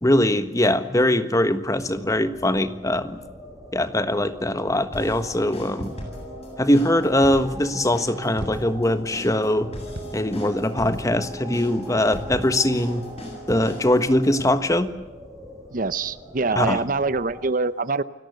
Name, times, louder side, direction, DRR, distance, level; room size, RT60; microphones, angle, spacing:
voice 1, 0.0-3.2 3.7-5.9 6.6-9.7 10.1-13.0 13.5-14.9 16.5-16.8, left 1 dB, 15° left, 11 dB, 1.4 m, -21 dB
sound 1, 1.7-17.5, right 1 dB, 15° right, 5.6 m, -43 dB
sound 2, 4.9-14.5, equal, 30° left, 7.7 m, -38 dB
sound 3, 5.8-6.3 7.2-7.7 8.4-9.1 9.9-10.5 10.7-10.8 12.3-12.8 13.5-14.0 14.4-14.9, equal, 75° right, 4.2 m, -40 dB
voice 2, 15.7-18.0, right 3 dB, 45° right, 16 dB, 0.7 m, -24 dB
29.5 x 18.0 x 8.0 m, 1.0 s
head